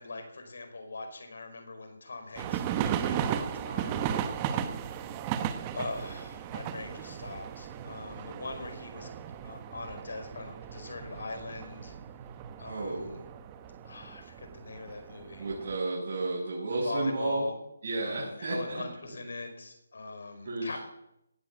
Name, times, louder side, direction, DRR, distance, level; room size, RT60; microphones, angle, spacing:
voice 1, 0.0-4.1 4.5-5.1 5.7-9.1 9.4-11.9 12.6-13.2 13.8-15.5 16.7-17.5 18.0-20.8, left 3 dB, 65° left, 6 dB, 5.0 m, -41 dB
sound 1, 2.4-15.8, right 9 dB, 15° right, 0.8 m, -36 dB
voice 2, 12.6-13.1 15.4-17.4 17.8-18.8 20.4-20.8, right 2 dB, 40° right, -7 dB, 6.5 m, -32 dB
18.0 x 9.6 x 8.1 m, 0.81 s
hypercardioid pair, 170°, 0 cm